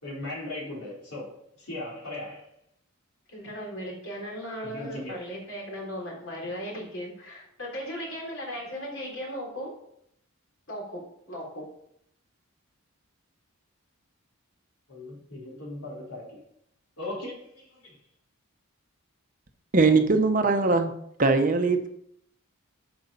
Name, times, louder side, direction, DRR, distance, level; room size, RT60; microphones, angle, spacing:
voice 1, 0.0-2.5 4.6-5.2 14.9-16.4 17.0-18.0, left 1 dB, 80° left, -4 dB, 3.9 m, -38 dB
voice 2, 3.3-9.7 10.7-11.0 11.3-11.6, equal, 55° left, -2 dB, 3.7 m, -37 dB
voice 3, 19.7-20.9 21.2-21.9, right 3 dB, 35° right, 6 dB, 0.8 m, -21 dB
8.2 x 6.1 x 5.5 m, 0.70 s
head